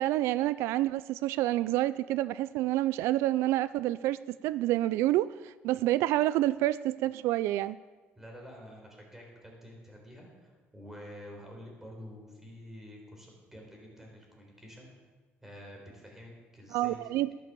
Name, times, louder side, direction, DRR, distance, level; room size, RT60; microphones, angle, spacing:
voice 1, 0.0-7.8 16.7-17.3, right 15 dB, 90° right, 17 dB, 0.4 m, -28 dB
voice 2, 8.2-14.9 15.4-17.3, equal, 10° right, 0 dB, 4.2 m, -49 dB
12.5 x 11.5 x 7.0 m, 1.3 s
cardioid pair, 135°, 4 cm